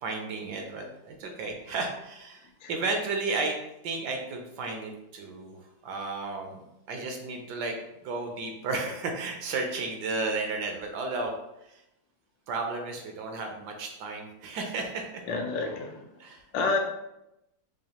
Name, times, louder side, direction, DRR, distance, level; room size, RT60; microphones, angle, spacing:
voice 1, 0.0-3.6 3.8-5.6 5.8-7.8 8.0-11.3 11.7-11.8 12.5-15.0 16.2-16.4, right 3 dB, 75° right, 3 dB, 1.1 m, -33 dB
voice 2, 15.3-15.9 16.5-16.8, left 3 dB, 85° left, 2 dB, 1.4 m, -28 dB
4.8 x 2.4 x 2.9 m, 0.88 s
omnidirectional pair, 2.0 m